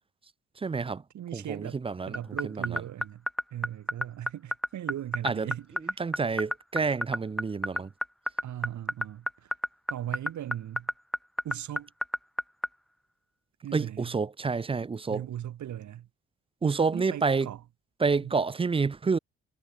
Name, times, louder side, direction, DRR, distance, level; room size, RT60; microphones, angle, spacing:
voice 1, 0.6-1.0 1.3-2.8 5.2-5.5 5.8-7.9 13.7-15.2 16.6-17.5 18.0-19.2, right 4 dB, 20° right, 0.5 m, -29 dB
voice 2, 1.1-1.8 2.1-3.2 3.5-5.7 8.4-9.3 9.9-10.9 11.4-11.9 13.6-14.1 15.1-16.1 16.6-17.6 18.2-18.3, right 11 dB, 70° right, 4.7 m, -38 dB
sound 1, 2.1-12.7, equal, ahead, 0.9 m, -28 dB
cardioid pair, 90°, 30 cm